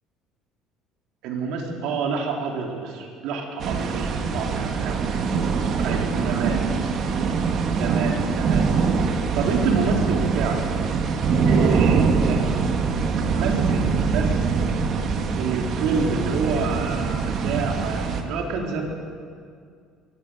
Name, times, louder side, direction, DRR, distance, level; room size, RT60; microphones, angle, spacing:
voice 1, 1.2-5.0 5.8-6.6 7.8-8.7 9.4-10.6 11.4-12.9 13.3-14.6 15.3-18.8, right 4 dB, 70° right, 1 dB, 3.9 m, -28 dB
sound 1, 3.6-18.2, right 5 dB, 40° right, 1.9 m, -23 dB
22.0 x 16.0 x 9.2 m, 2.2 s
cardioid pair, 165°, 0 cm